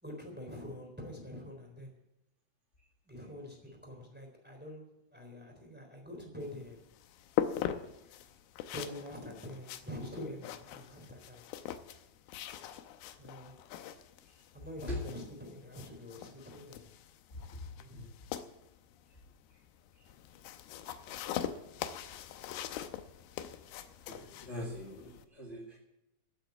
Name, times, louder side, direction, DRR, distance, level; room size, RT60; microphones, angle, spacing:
voice 1, 0.0-1.9 3.0-6.8 8.7-11.5 13.2-13.5 14.5-16.9 17.6-18.1, left 1 dB, 5° right, 2 dB, 3.0 m, -46 dB
sound 1, 6.4-25.2, left 11 dB, 85° left, 2.7 m, -42 dB
voice 2, 24.1-25.8, left 1 dB, 30° left, -2 dB, 1.4 m, -41 dB
15.0 x 8.0 x 8.0 m, 0.86 s
omnidirectional pair, 4.4 m